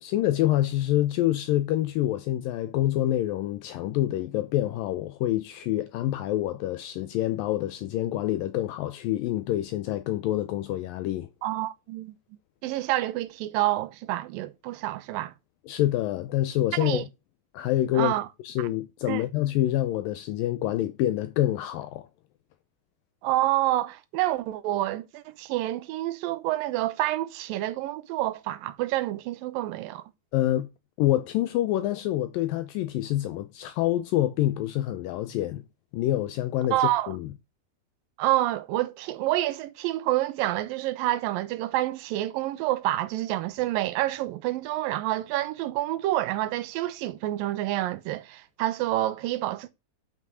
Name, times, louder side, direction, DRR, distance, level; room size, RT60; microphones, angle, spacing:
voice 1, 0.0-11.3 15.7-17.1 17.5-18.1 18.4-22.1 30.3-30.7 31.0-35.6 35.9-36.8 37.1-37.3, left 14 dB, 80° left, 2.2 m, -26 dB
voice 2, 11.4-12.1 12.6-15.3 16.7-17.0 17.9-18.3 19.1-19.2 23.2-30.0 36.7-37.1 38.2-49.7, right 15 dB, 80° right, 2.3 m, -28 dB
5.9 x 5.7 x 6.2 m
omnidirectional pair, 4.4 m